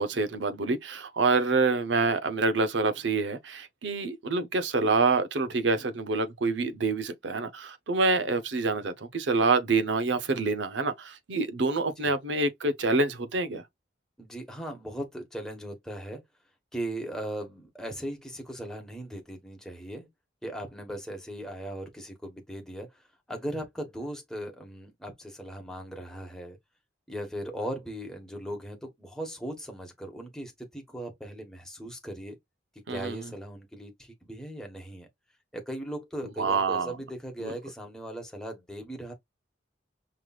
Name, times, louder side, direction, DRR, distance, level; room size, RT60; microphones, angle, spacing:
voice 1, 0.0-13.6 32.9-33.3 36.4-36.9 37.4-37.5, right 3 dB, 70° right, 0.8 m, -27 dB
voice 2, 14.2-16.2 16.7-20.1 20.4-26.6 27.1-32.4 32.9-35.1 35.5-39.1, right 1 dB, 5° left, 1.2 m, -38 dB
5.7 x 3.2 x 2.4 m
head